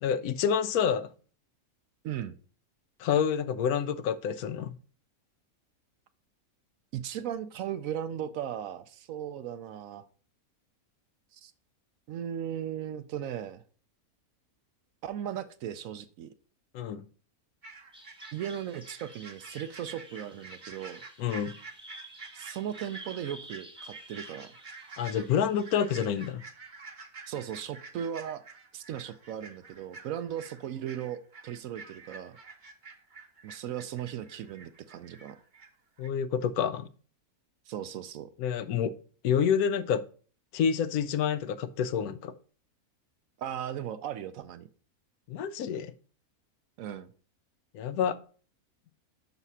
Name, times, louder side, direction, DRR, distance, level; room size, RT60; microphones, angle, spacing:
voice 1, 0.0-1.1 3.0-4.8 16.7-17.1 21.2-21.6 25.0-26.4 36.0-36.9 38.4-38.9 39.2-40.1 40.5-42.3 45.3-45.9 47.7-48.1, left 8 dB, 80° left, 1.0 m, -28 dB
voice 2, 6.9-10.1 11.3-11.5 12.1-13.6 15.0-16.3 18.3-21.0 22.3-24.5 27.3-28.4 28.7-32.4 33.4-35.4 37.7-38.3 43.4-44.7 46.8-47.1, right 10 dB, 70° right, 0.9 m, -37 dB
sound 1, 17.6-35.7 36.0-36.1, right 4 dB, 40° right, 0.9 m, -49 dB
Bird vocalization bird call bird song, 17.9-26.3, right 1 dB, 5° right, 0.9 m, -51 dB
6.0 x 4.1 x 5.5 m
omnidirectional pair, 1.6 m